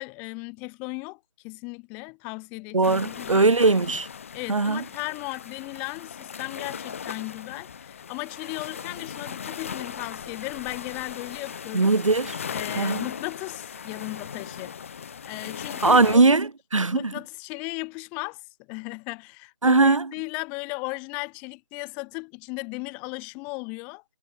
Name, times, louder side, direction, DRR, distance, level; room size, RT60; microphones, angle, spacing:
voice 1, 0.0-3.7 4.3-11.9 12.5-14.9 15.3-16.4 16.8-18.4 18.7-24.0, left 31 dB, 10° left, 5.4 m, -36 dB
voice 2, 2.7-4.1 4.5-4.8 11.7-12.4 12.8-13.0 15.8-17.1 19.6-20.1, right 3 dB, 85° right, 3.0 m, -20 dB
sound 1, 2.8-16.2, left 7 dB, 25° left, 7.8 m, -38 dB
hypercardioid pair, 175°, 16 cm